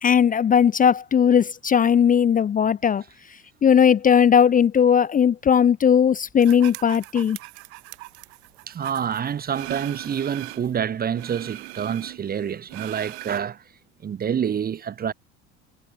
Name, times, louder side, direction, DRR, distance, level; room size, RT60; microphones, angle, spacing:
voice 1, 0.0-3.0 3.6-7.4, left 8 dB, 25° left, 0.7 m, -18 dB
sound 1, 6.4-10.7 11.1-13.4, right 23 dB, 65° right, 2.7 m, -40 dB
voice 2, 8.7-13.6 14.0-15.1, right 8 dB, 25° right, 1.0 m, -27 dB
figure-of-eight pair, 65°, 36 cm